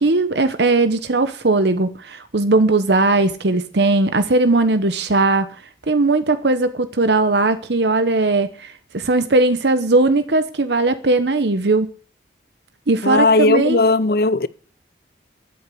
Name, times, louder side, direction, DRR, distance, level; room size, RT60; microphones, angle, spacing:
voice 1, 0.0-5.5 5.9-11.9 12.9-13.8, right 2 dB, 70° right, 0.9 m, -18 dB
voice 2, 13.0-14.5, left 3 dB, 55° left, 0.7 m, -16 dB
12.5 x 8.2 x 8.5 m
head